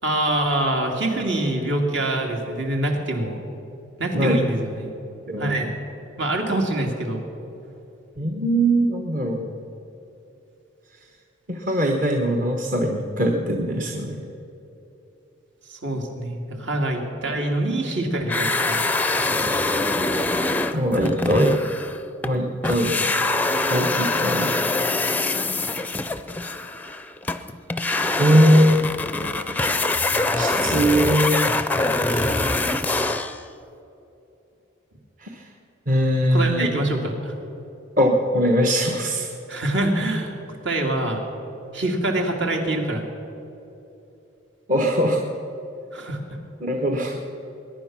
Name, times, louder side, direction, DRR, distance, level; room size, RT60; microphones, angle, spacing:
voice 1, 0.0-3.4 4.0-5.0 5.4-5.7 6.2-7.2 15.7-18.9 32.2-32.4 36.3-37.3 39.5-40.3 40.6-41.2 41.7-43.0 45.9-46.2, right 1 dB, 65° right, 1 dB, 2.4 m, -25 dB
voice 2, 8.2-9.5 11.5-14.2 20.7-21.5 22.2-22.9 23.7-24.5 28.2-28.9 30.3-31.5 32.1-32.5 35.2-35.5 35.9-36.7 38.0-39.3 44.7-45.2 46.6-47.2, equal, 40° right, 2 dB, 1.1 m, -21 dB
sound 1, 18.3-22.4 22.6-33.4, left 2 dB, 10° left, 0.5 m, -24 dB
21.5 x 10.5 x 6.0 m, 2.9 s
head